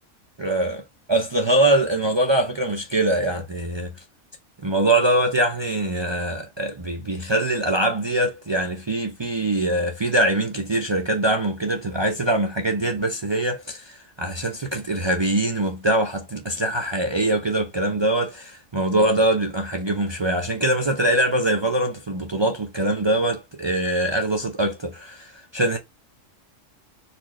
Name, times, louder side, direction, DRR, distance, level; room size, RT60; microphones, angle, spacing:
voice 1, 0.4-0.8 1.1-3.9 4.6-25.8, right 1 dB, 50° right, 0.3 m, -23 dB
4.2 x 2.3 x 3.0 m
omnidirectional pair, 1.3 m